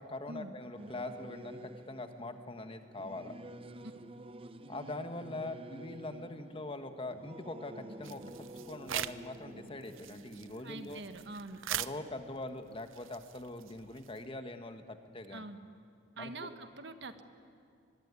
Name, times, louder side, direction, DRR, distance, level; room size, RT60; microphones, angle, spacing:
voice 1, 0.0-3.3 4.7-8.2 8.7-11.0 11.7-15.5 16.2-16.5, left 2 dB, 30° left, 7 dB, 1.4 m, -43 dB
Singing / Musical instrument, 0.8-12.6, right 1 dB, 30° right, 0.8 m, -50 dB
sound 1, 8.0-9.4 9.7-14.3, right 11 dB, 90° right, 0.7 m, -42 dB
voice 2, 10.6-11.6 15.3-15.6 16.2-17.2, right 2 dB, 60° right, 8 dB, 1.6 m, -44 dB
23.5 x 23.0 x 9.7 m, 2.3 s
head